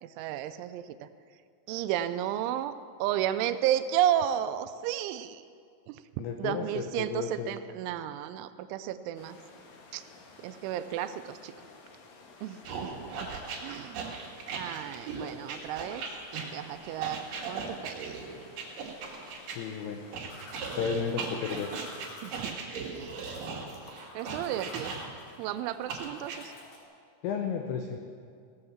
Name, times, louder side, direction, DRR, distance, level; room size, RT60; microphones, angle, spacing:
voice 1, 0.0-1.1 1.7-5.4 5.9-9.4 9.9-10.0 10.4-11.7 12.4-12.9 13.2-13.3 13.6-14.2 14.5-16.0 16.5-18.3 22.2-22.6 22.9-23.1 24.1-24.9 25.4-26.5, right 11 dB, 85° right, 11 dB, 2.9 m, -33 dB
voice 2, 6.2-7.5 19.5-20.0 20.7-21.7 27.2-28.0, left 6 dB, 85° left, 4 dB, 2.2 m, -33 dB
sound 1, 9.1-22.0, left 3 dB, 65° left, 2.4 m, -53 dB
sound 2, 12.6-19.6 20.1-25.3 25.9-26.4, right 5 dB, 55° right, 3.0 m, -38 dB
sound 3, 20.2-26.8, left 1 dB, 50° left, 2.8 m, -50 dB
17.5 x 7.8 x 7.2 m, 2.2 s
omnidirectional pair, 5.6 m